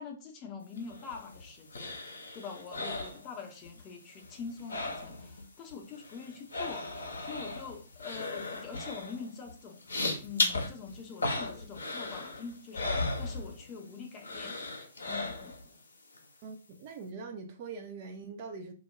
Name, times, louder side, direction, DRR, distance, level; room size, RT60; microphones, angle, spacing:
voice 1, 0.0-14.6 15.0-15.6, left 5 dB, 25° left, 0.5 m, -45 dB
sound 1, 0.8-3.8 4.1-5.4 5.7-13.9 14.2-15.7 16.1-16.2, left 2 dB, 70° left, 0.6 m, -36 dB
voice 2, 16.4-18.7, right 4 dB, 35° right, 0.4 m, -43 dB
2.3 x 2.0 x 3.0 m
figure-of-eight pair, 120°, 0 cm